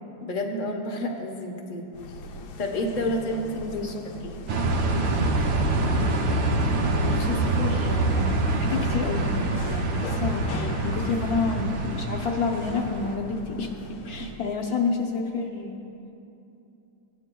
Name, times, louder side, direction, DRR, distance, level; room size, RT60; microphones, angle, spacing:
voice 1, 0.2-1.9 2.6-3.7 4.2-4.4 10.5-11.0 14.2-14.3, left 1 dB, 40° left, 0 dB, 0.6 m, -30 dB
sound 1, 1.9-14.5, left 1 dB, 85° left, 1.4 m, -40 dB
voice 2, 3.6-4.0 7.0-13.8 14.1-15.8, left 4 dB, 60° left, 0 dB, 1.1 m, -29 dB
sound 2, 4.5-13.2, right 2 dB, 80° right, 1.5 m, -25 dB
17.0 x 9.8 x 2.3 m, 2.9 s
omnidirectional pair, 2.1 m